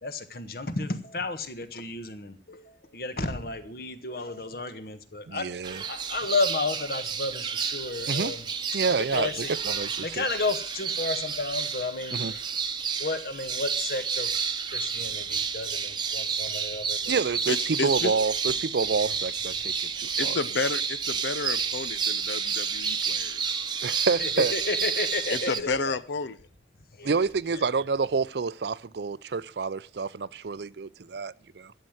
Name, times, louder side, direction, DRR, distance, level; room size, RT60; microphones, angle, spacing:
voice 1, 0.0-8.4 9.1-9.5 10.0-12.4 13.0-14.3 14.7-17.2 24.2-25.8 27.0-27.2, left 3 dB, 55° left, 1.4 m, -32 dB
voice 2, 5.3-5.8 8.1-8.3 8.7-10.2 12.1-12.3 17.1-20.4 23.8-24.5 27.0-31.7, right 4 dB, 70° right, 0.5 m, -28 dB
sound 1, 5.6-25.6, right 6 dB, 25° right, 0.8 m, -30 dB
voice 3, 17.5-18.1 20.2-23.7 25.3-26.4, left 4 dB, 80° left, 0.8 m, -31 dB
12.5 x 7.6 x 7.8 m
head